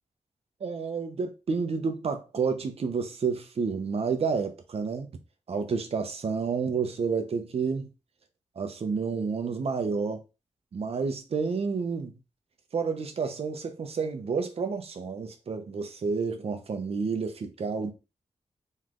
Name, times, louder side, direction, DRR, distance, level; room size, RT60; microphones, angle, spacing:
voice 1, 0.6-5.1 5.5-7.9 8.6-10.2 10.7-12.2 12.7-17.9, right 5 dB, 55° right, 0.8 m, -30 dB
4.0 x 3.2 x 3.7 m
wide cardioid pair, 160°, 12 cm